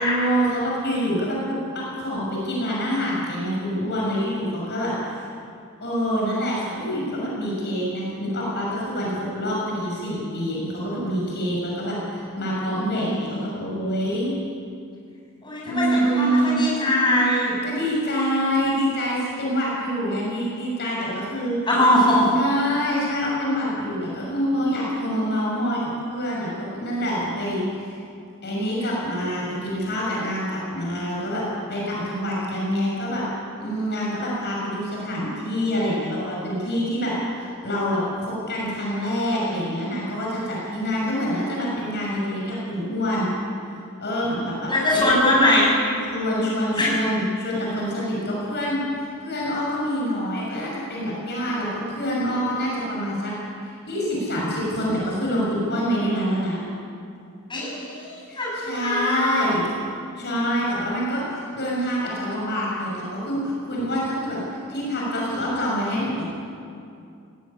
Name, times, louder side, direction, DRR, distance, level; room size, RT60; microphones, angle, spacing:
voice 1, 0.0-5.3 5.8-14.3 15.6-16.6 17.6-21.6 22.3-28.0 28.4-33.3 33.6-43.3 43.7-45.0 46.1-53.4 53.6-56.6 58.3-59.7 60.2-64.4 64.7-66.3, equal, 50° left, -4 dB, 6.5 m, -26 dB
voice 2, 13.0-13.5 15.4-17.6 21.7-22.3 44.7-45.7 46.8-46.9 57.5-59.4, left 1 dB, 20° left, -5 dB, 7.9 m, -21 dB
18.5 x 18.0 x 9.8 m, 2.5 s
head